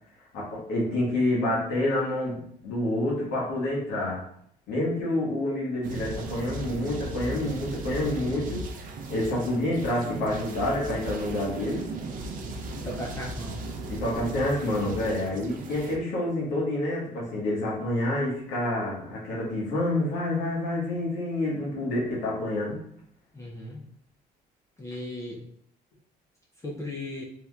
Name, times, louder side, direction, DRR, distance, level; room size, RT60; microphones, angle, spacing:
voice 1, 0.3-4.2 4.7-8.7 9.1-11.9 13.9-22.8, left 1 dB, 80° left, -5 dB, 1.2 m, -28 dB
sound 1, 5.8-16.0, right 2 dB, 55° right, 0.5 m, -36 dB
voice 2, 12.8-13.6 23.3-23.9 24.8-25.4 26.6-27.2, left 1 dB, 15° left, -4 dB, 0.5 m, -36 dB
3.3 x 2.9 x 2.3 m, 0.66 s
cardioid pair, 110°, 17 cm